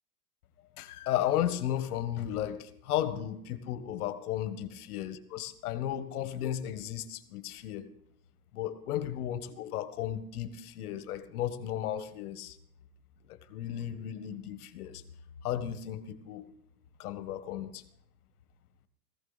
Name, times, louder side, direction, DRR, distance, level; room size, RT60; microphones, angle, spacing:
voice 1, 0.8-7.9 8.5-12.6 13.3-15.0 15.4-16.5 17.0-17.8, left 11 dB, 65° left, 11 dB, 1.5 m, -34 dB
16.0 x 15.5 x 4.1 m, 0.72 s
hypercardioid pair, 130°, 47 cm